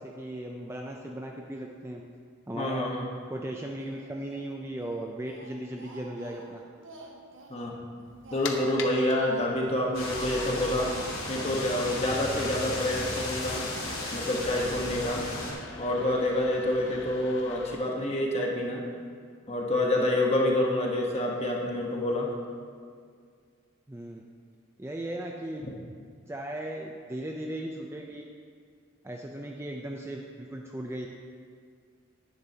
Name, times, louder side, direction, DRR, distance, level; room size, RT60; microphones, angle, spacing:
voice 1, 0.0-2.0 2.5-2.9 3.3-6.6 16.8-16.9 23.9-24.2 24.8-25.6 26.3-28.2 29.0-31.1, right 1 dB, 10° right, 0 dB, 0.4 m, -37 dB
voice 2, 2.5-3.0 7.5-7.8 8.3-10.9 11.3-13.7 14.1-15.3 15.8-18.9 19.5-22.3, left 1 dB, 30° left, -1 dB, 1.1 m, -27 dB
Speech, 3.8-4.5 4.8-7.6 8.0-9.5 9.9-11.6, right 2 dB, 60° right, 1.0 m, -48 dB
sound 1, 8.1-17.8, left 5 dB, 60° left, 0.7 m, -45 dB
sound 2, 9.9-15.5, left 1 dB, 75° left, 2.5 m, -34 dB
10.0 x 10.0 x 2.8 m, 2.1 s
head